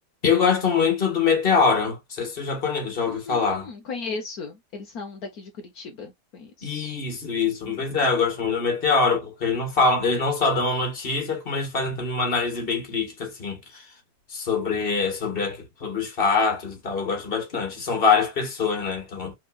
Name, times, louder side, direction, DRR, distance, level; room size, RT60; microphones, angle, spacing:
voice 1, 0.2-3.7 6.6-13.8 14.3-19.4, left 5 dB, 35° left, 1.8 m, -24 dB
voice 2, 3.1-7.0, left 4 dB, 70° left, 1.4 m, -37 dB
5.7 x 3.7 x 2.4 m
omnidirectional pair, 1.7 m